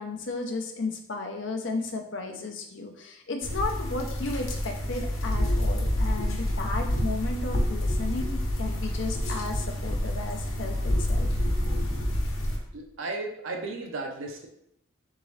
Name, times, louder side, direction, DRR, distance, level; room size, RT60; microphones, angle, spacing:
voice 1, 0.0-11.3, left 3 dB, 60° left, 3 dB, 0.6 m, -34 dB
sound 1, 3.4-12.6, left 1 dB, 85° left, 1.0 m, -28 dB
voice 2, 12.7-14.5, right 3 dB, 75° right, 2 dB, 0.7 m, -34 dB
3.9 x 3.7 x 3.2 m, 0.74 s
head